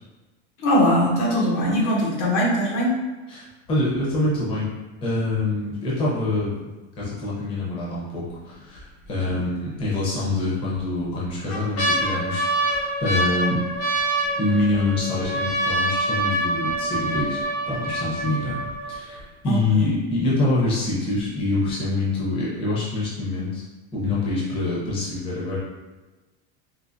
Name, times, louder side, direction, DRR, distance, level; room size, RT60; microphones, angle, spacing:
voice 1, 0.6-2.9 9.2-9.3 19.4-19.6, equal, 90° left, -5 dB, 1.4 m, -21 dB
voice 2, 3.3-4.7 5.0-6.6 7.0-13.6 14.4-17.4 17.7-18.6 18.8-23.6 23.9-25.6, left 2 dB, 15° left, -7 dB, 0.6 m, -25 dB
sound 1, 8.3-8.8 9.3-9.4 10.3-10.8 11.2-19.2 19.9-20.0 20.2-20.7 21.2-21.3, right 1 dB, 65° left, 1.1 m, -26 dB
3.9 x 2.7 x 2.6 m, 1.2 s
supercardioid pair, 170°, 34 cm